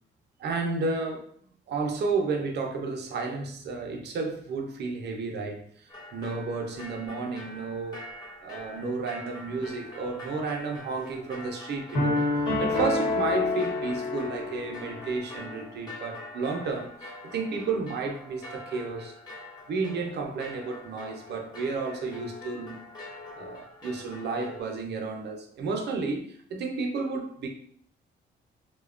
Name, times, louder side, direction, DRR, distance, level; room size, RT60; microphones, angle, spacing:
voice 1, 0.4-1.3 1.7-8.0 8.4-12.2 12.6-19.1 19.7-22.8 23.4-27.5, right 4 dB, 60° right, 3 dB, 0.6 m, -32 dB
sound 1, 5.9-24.6, left 2 dB, 20° left, 1.1 m, -45 dB
sound 2, 11.9-15.2, left 3 dB, 85° left, 1.2 m, -27 dB
2.7 x 2.1 x 2.4 m, 0.62 s
cardioid pair, 90°, 20 cm